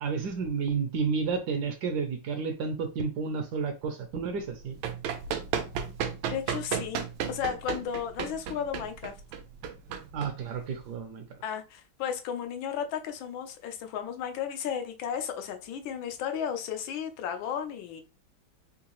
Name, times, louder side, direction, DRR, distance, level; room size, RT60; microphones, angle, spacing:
voice 1, 0.0-4.8 10.1-11.2, right 5 dB, 70° right, 1.0 m, -31 dB
Run, 4.5-10.9, right 8 dB, 90° right, 1.4 m, -34 dB
voice 2, 6.3-9.1 11.4-18.0, left 8 dB, 90° left, 1.4 m, -34 dB
3.8 x 2.6 x 2.9 m
omnidirectional pair, 2.1 m